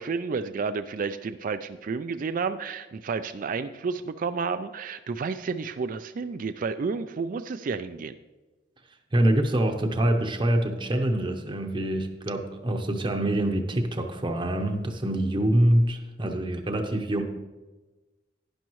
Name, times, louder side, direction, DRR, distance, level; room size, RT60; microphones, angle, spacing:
voice 1, 0.0-8.1, right 5 dB, 50° right, 10 dB, 0.4 m, -31 dB
voice 2, 9.1-17.2, right 1 dB, 25° right, 4 dB, 0.8 m, -25 dB
11.5 x 10.5 x 3.1 m, 1.2 s
head